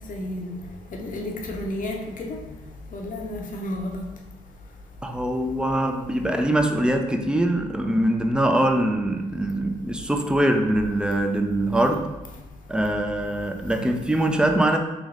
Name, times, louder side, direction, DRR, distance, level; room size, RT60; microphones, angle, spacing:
voice 1, 0.1-0.5 0.9-2.4 2.9-4.1, left 1 dB, 60° left, 2 dB, 0.8 m, -31 dB
voice 2, 5.0-12.1 12.7-14.8, right 1 dB, 5° right, 5 dB, 0.5 m, -23 dB
3.4 x 3.0 x 3.7 m, 1.1 s
supercardioid pair, 50°, 15 cm